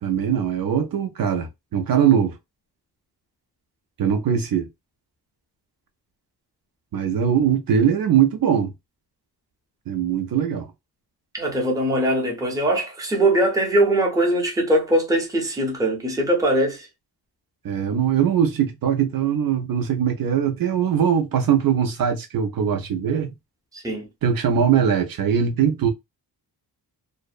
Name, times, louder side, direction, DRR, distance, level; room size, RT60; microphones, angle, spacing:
voice 1, 0.0-2.4 4.0-4.7 6.9-8.7 9.9-10.7 17.6-23.3 24.2-25.9, right 8 dB, 60° right, 0.5 m, -21 dB
voice 2, 11.3-16.9 23.7-24.1, right 1 dB, 10° right, 0.6 m, -21 dB
2.6 x 2.0 x 2.3 m
wide cardioid pair, 165°, 40 cm